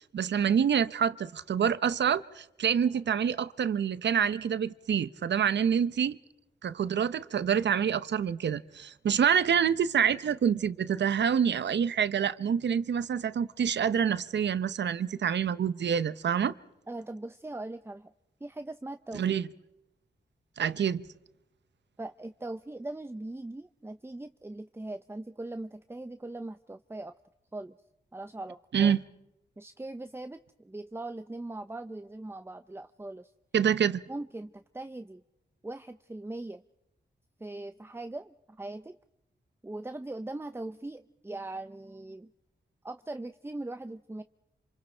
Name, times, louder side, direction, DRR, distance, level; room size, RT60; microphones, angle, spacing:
voice 1, 0.0-6.2 6.6-16.5 19.1-19.4 20.6-21.0 28.7-29.0 33.5-34.0, right 8 dB, 90° right, 0.8 m, -27 dB
voice 2, 16.9-18.1 18.4-19.2 22.0-27.1 27.5-27.8 28.1-28.9 29.6-33.3 34.1-35.2 35.6-36.6 37.4-39.0 39.6-42.3 42.8-44.2, right 2 dB, 15° right, 0.7 m, -40 dB
27.5 x 27.0 x 4.5 m
cardioid pair, 65°, 18 cm